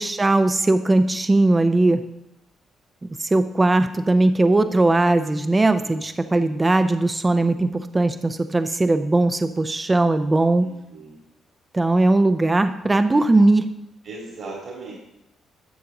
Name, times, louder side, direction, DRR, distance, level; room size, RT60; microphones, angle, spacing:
voice 1, 0.0-2.0 3.2-10.7 11.7-13.7, right 2 dB, 20° right, 9 dB, 0.5 m, -19 dB
voice 2, 5.8-6.5 10.6-11.2 14.0-14.9, right 3 dB, 65° right, -2 dB, 2.6 m, -38 dB
12.0 x 6.9 x 3.8 m, 0.87 s
cardioid pair, 90°, 0 cm